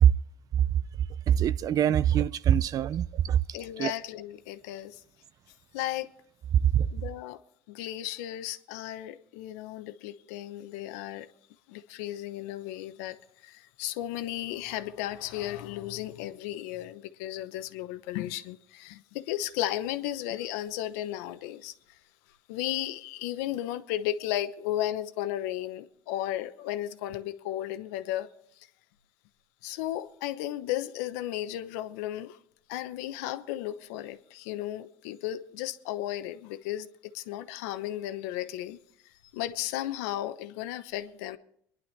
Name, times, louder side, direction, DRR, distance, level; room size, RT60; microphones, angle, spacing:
voice 1, 1.3-3.4 3.8-3.9 6.7-6.8, right 10 dB, 50° right, 0.5 m, -23 dB
voice 2, 3.5-5.0 5.7-6.1 6.9-7.4 7.7-11.3 11.7-13.2 13.4-21.7 22.5-28.3 29.6-32.4 32.7-38.8 39.3-41.4, left 13 dB, 85° left, 0.9 m, -34 dB
24.5 x 11.0 x 3.3 m
supercardioid pair, 95°, 8 cm